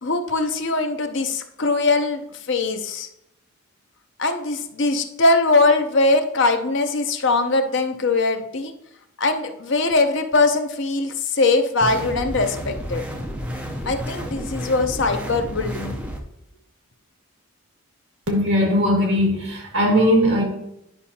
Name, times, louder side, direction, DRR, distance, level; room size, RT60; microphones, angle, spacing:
voice 1, 0.0-3.1 4.2-8.7 9.2-13.0 13.9-16.0, left 3 dB, 55° left, 0.6 m, -21 dB
sound 1, 11.8-16.2, equal, 5° right, 0.6 m, -31 dB
voice 2, 18.3-20.4, equal, 60° right, 1.9 m, -19 dB
10.0 x 5.5 x 2.8 m
head